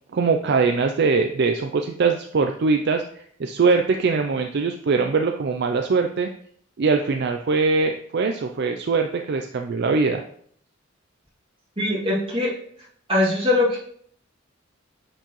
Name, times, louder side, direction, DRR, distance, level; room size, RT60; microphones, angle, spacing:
voice 1, 0.1-6.3 6.8-10.2, right 4 dB, 55° right, 5 dB, 0.4 m, -22 dB
voice 2, 11.8-12.5 13.1-13.8, left 2 dB, 25° right, -5 dB, 2.2 m, -21 dB
8.9 x 4.6 x 3.1 m, 0.62 s
head